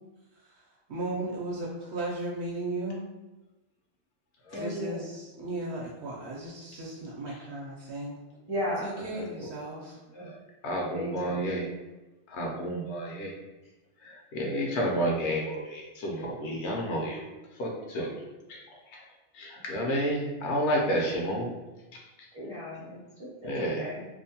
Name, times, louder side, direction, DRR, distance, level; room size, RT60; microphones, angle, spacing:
voice 1, 0.9-3.0 4.5-8.2 8.8-10.0, right 2 dB, 75° right, -4 dB, 0.8 m, -36 dB
voice 2, 4.5-5.0 8.5-8.9 10.9-11.4 22.3-23.5 23.7-24.1, equal, 35° right, -8 dB, 0.6 m, -35 dB
voice 3, 10.6-11.7 12.3-13.3 14.0-17.3 17.6-18.2 18.5-18.6 18.9-19.0 19.3-21.5 21.9-22.0 23.4-23.8, equal, 80° left, -1 dB, 0.9 m, -31 dB
2.6 x 2.1 x 2.7 m, 1.1 s
omnidirectional pair, 1.2 m